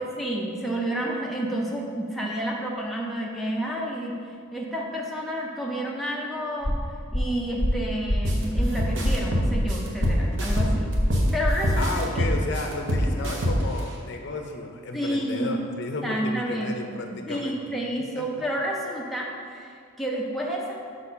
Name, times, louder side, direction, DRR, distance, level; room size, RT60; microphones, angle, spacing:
voice 1, 0.0-4.2 4.5-6.7 7.1-10.9 11.3-12.3 14.9-15.6 16.0-16.7 17.1-20.8, right 1 dB, ahead, -3 dB, 0.5 m, -30 dB
sound 1, 6.6-11.6, equal, 35° left, 1.1 m, -26 dB
sound 2, 8.2-8.4 8.8-11.3 11.6-13.8, equal, 60° right, 0.9 m, -25 dB
voice 2, 11.8-17.6 18.1-18.2, left 2 dB, 55° left, 3 dB, 0.5 m, -33 dB
4.9 x 4.2 x 5.6 m, 2.2 s
head